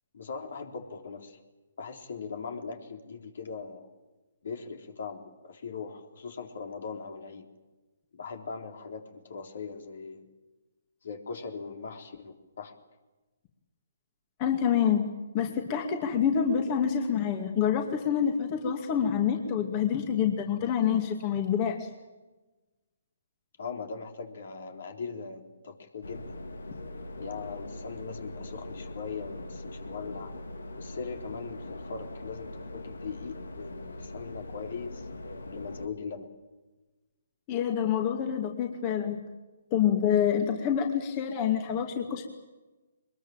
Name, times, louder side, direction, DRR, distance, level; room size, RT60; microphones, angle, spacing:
voice 1, 0.1-1.4 1.8-3.9 4.4-7.5 8.1-10.2 11.0-12.7 23.6-26.4 27.2-30.3 30.8-35.1 35.5-36.3, left 5 dB, 65° left, 4 dB, 3.9 m, -40 dB
voice 2, 14.4-15.1 15.3-21.9 37.5-39.2 39.7-42.2, left 8 dB, 30° left, 4 dB, 2.5 m, -27 dB
sound 1, 26.0-35.9, left 2 dB, 85° left, 2.2 m, -41 dB
23.0 x 21.5 x 8.9 m, 1.1 s
hypercardioid pair, 145°, 0 cm